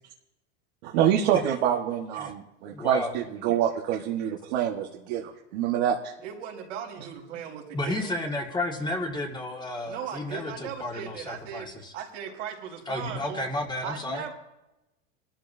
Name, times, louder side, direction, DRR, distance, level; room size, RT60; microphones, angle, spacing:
voice 1, 0.9-6.1, right 10 dB, 65° right, 0 dB, 1.6 m, -26 dB
voice 2, 2.7-3.1 7.7-11.9 12.9-14.2, left 2 dB, 10° left, 1 dB, 2.0 m, -32 dB
voice 3, 6.2-8.2 9.8-11.7 11.9-13.5 13.8-14.3, right 8 dB, 85° right, -1 dB, 4.3 m, -38 dB
22.0 x 13.5 x 2.7 m, 0.96 s
supercardioid pair, 125°, 36 cm